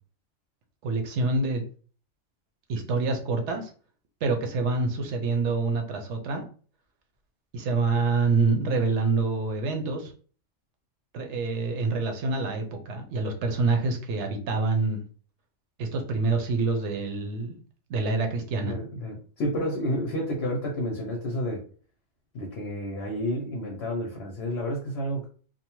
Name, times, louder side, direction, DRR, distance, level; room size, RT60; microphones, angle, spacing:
voice 1, 0.8-1.6 2.7-3.7 4.2-6.4 7.5-10.1 11.1-15.0 15.8-17.5 17.9-18.8, right 3 dB, 70° right, 4 dB, 0.9 m, -26 dB
voice 2, 18.6-21.6 22.3-25.3, equal, 65° left, -1 dB, 0.8 m, -30 dB
2.7 x 2.1 x 2.9 m, 0.41 s
omnidirectional pair, 1.3 m